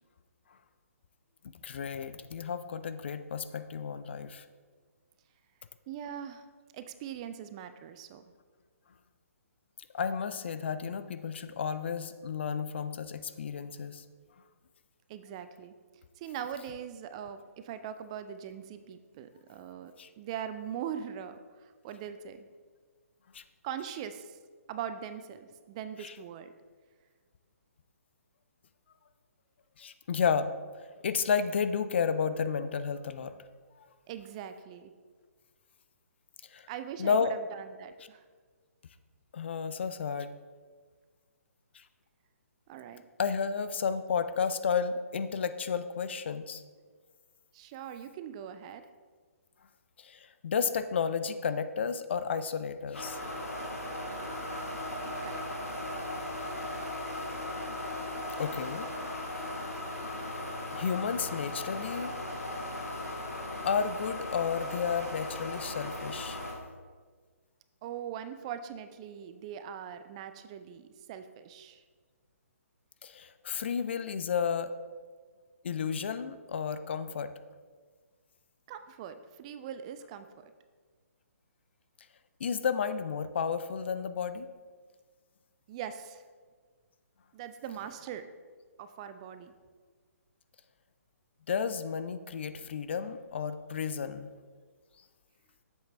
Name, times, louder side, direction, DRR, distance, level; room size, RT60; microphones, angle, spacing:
voice 1, 1.6-4.4 9.9-14.0 20.0-20.1 23.3-23.4 26.0-26.1 29.8-30.5 31.0-33.4 36.5-36.7 37.0-37.3 39.3-40.3 41.7-41.8 43.2-46.6 50.0-53.2 56.4-56.5 58.4-58.9 60.7-62.1 63.6-66.4 73.0-74.7 75.6-77.3 82.4-84.5 91.5-94.3, left 6 dB, 45° left, 11 dB, 0.4 m, -32 dB
voice 2, 5.9-6.5 6.7-8.3 15.1-15.7 16.2-22.5 23.6-24.4 24.7-26.5 34.1-34.9 36.7-38.2 42.7-43.1 47.5-48.8 55.2-55.4 67.8-71.8 78.7-80.5 85.7-86.2 87.3-88.2 88.8-89.5, right 9 dB, 25° right, 10 dB, 0.3 m, -41 dB
sound 1, 52.9-66.5, left 1 dB, 75° left, 1.9 m, -37 dB
8.9 x 7.4 x 3.3 m, 1.5 s
figure-of-eight pair, 130°, 8 cm